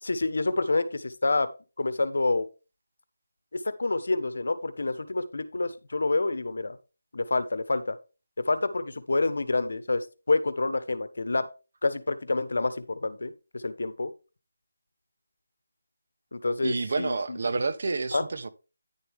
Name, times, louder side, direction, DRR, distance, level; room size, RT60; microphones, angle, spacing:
voice 1, 0.0-1.5 1.8-2.5 3.5-6.8 7.1-7.9 8.5-11.5 11.8-14.1 16.3-17.4 18.1-18.2, left 3 dB, 70° left, 1.2 m, -28 dB
voice 2, 16.6-18.5, right 3 dB, 50° right, 1.0 m, -29 dB
10.0 x 6.9 x 3.5 m
figure-of-eight pair, 165°, 0 cm